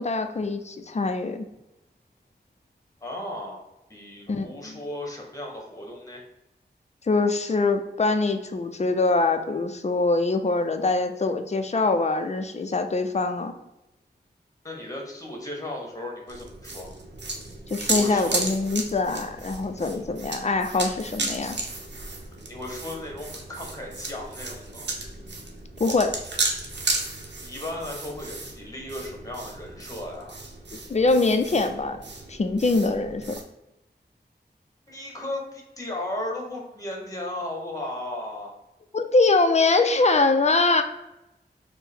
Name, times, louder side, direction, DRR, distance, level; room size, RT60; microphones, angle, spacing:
voice 1, 0.0-1.5 4.3-4.8 7.1-13.5 17.7-21.6 25.8-26.2 30.9-32.0 32.3-33.4 38.9-40.8, left 3 dB, 40° left, 8 dB, 0.4 m, -23 dB
voice 2, 3.0-3.6 3.9-6.2 14.6-16.9 17.9-18.4 22.5-24.9 27.4-30.4 34.9-38.5, left 1 dB, 20° left, 0 dB, 1.0 m, -35 dB
sound 1, 16.3-33.4, right 3 dB, 80° right, 0.7 m, -34 dB
4.3 x 2.0 x 3.4 m, 0.93 s
wide cardioid pair, 80°, 18 cm